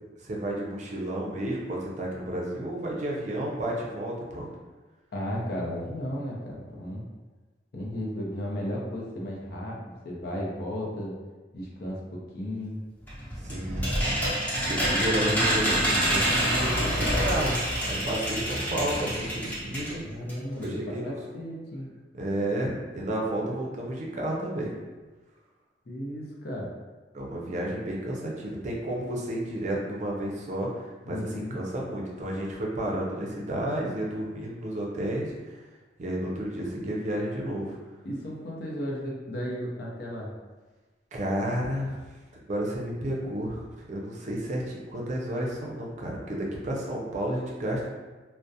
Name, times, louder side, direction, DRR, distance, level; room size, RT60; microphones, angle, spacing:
voice 1, 0.2-4.5 13.4-14.4 14.7-17.5 17.9-20.0 20.6-21.4 22.1-24.7 27.1-35.6 36.0-37.8 41.1-42.0 42.5-43.6 43.9-47.9, right 1 dB, 45° right, -2 dB, 0.5 m, -31 dB
voice 2, 5.1-7.1 7.7-11.2 11.5-12.8 20.0-21.9 23.4-23.9 25.9-26.7 31.1-31.6 37.4-37.5 38.0-40.3, equal, 60° left, -3 dB, 0.6 m, -34 dB
sound 1, 13.1-20.0 20.3-20.4 20.6-20.7, equal, 10° left, 0.7 m, -27 dB
2.3 x 2.1 x 2.6 m, 1.3 s
head